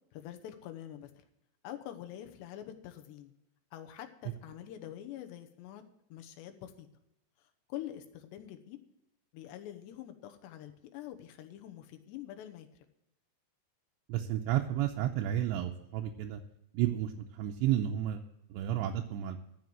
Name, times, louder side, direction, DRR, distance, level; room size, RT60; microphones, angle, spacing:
voice 1, 0.1-1.2 1.6-3.3 3.7-5.8 6.1-6.9 7.7-8.8 9.3-12.7, left 12 dB, 75° left, 7 dB, 3.2 m, -45 dB
voice 2, 14.1-16.4 16.7-18.2 18.5-19.4, right 12 dB, 85° right, 1 dB, 2.9 m, -32 dB
13.5 x 7.1 x 7.9 m, 0.82 s
omnidirectional pair, 5.1 m